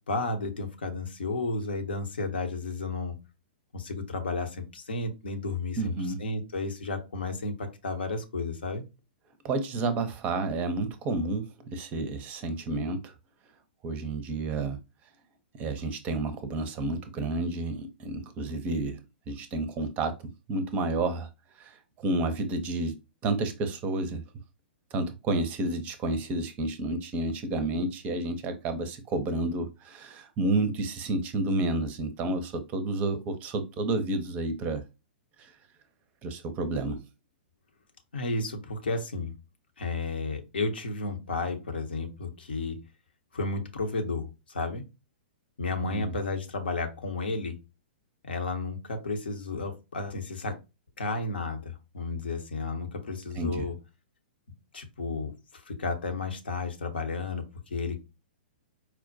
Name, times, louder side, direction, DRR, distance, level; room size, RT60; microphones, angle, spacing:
voice 1, 0.1-3.2 3.7-5.9 6.2-8.8 38.1-39.3 39.8-42.8 43.3-44.8 45.6-47.6 48.2-50.5 51.0-53.7 54.7-57.4 57.7-58.0, left 3 dB, 70° left, 0.8 m, -32 dB
voice 2, 5.8-6.2 9.4-13.1 13.8-14.8 15.6-19.0 19.3-20.2 20.5-21.3 21.6-23.0 23.2-24.2 24.9-34.8 35.4-35.5 36.2-37.0 45.8-46.1 53.4-53.7, right 2 dB, 25° right, 0.5 m, -30 dB
4.3 x 2.1 x 2.6 m
figure-of-eight pair, 110°, 6 cm